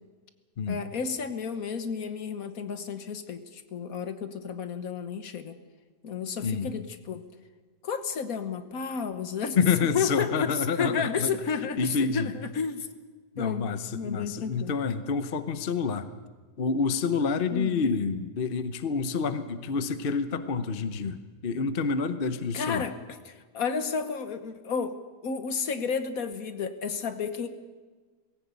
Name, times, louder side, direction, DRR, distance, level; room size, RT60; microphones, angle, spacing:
voice 1, 0.7-5.6 6.0-7.3 7.8-9.6 9.9-12.9 13.4-14.7 17.5-17.9 22.5-24.9 25.2-27.5, left 6 dB, 60° left, 10 dB, 1.5 m, -32 dB
voice 2, 9.6-11.3 11.8-12.3 13.4-16.1 16.6-22.9, left 5 dB, 45° left, 10 dB, 0.8 m, -28 dB
19.0 x 16.5 x 8.2 m, 1.4 s
omnidirectional pair, 1.8 m